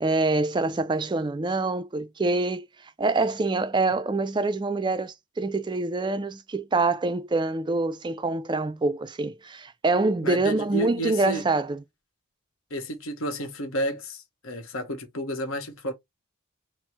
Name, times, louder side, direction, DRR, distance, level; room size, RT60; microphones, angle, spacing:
voice 1, 0.0-2.7 3.0-11.8, right 3 dB, 20° right, 0.3 m, -25 dB
voice 2, 10.2-11.4 12.7-15.9, equal, 65° left, 1.1 m, -31 dB
4.3 x 2.1 x 4.6 m
head